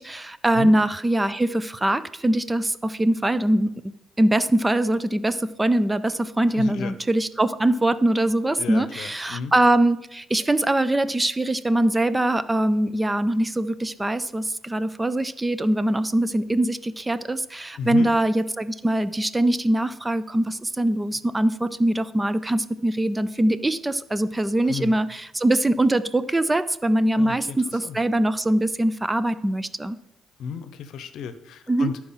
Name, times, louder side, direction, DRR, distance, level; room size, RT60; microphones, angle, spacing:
voice 1, 0.0-30.0 31.7-31.9, right 1 dB, 15° right, 15 dB, 0.4 m, -22 dB
voice 2, 6.5-6.9 8.6-9.5 17.8-18.1 24.6-24.9 27.2-28.0 30.4-32.0, left 6 dB, 70° left, 12 dB, 0.8 m, -33 dB
12.0 x 4.7 x 5.6 m, 0.86 s
cardioid pair, 100°, 0 cm